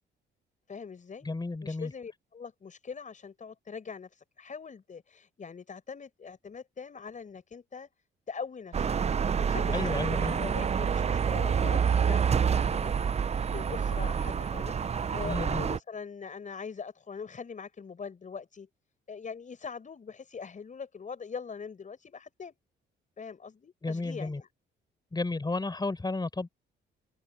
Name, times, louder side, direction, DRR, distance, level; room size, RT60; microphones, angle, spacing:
voice 1, 0.7-1.3 1.6-7.9 8.3-8.9 9.4-12.9 13.5-18.7 19.1-22.5 23.2-24.5, left 5 dB, 40° left, 5.9 m, -42 dB
voice 2, 1.2-1.9 9.7-10.4 15.2-15.6 23.8-24.4 25.1-26.5, left 3 dB, 20° left, 6.2 m, -32 dB
sound 1, 8.7-15.8, right 7 dB, 35° right, 0.6 m, -27 dB
open air
cardioid pair, 90°, 20 cm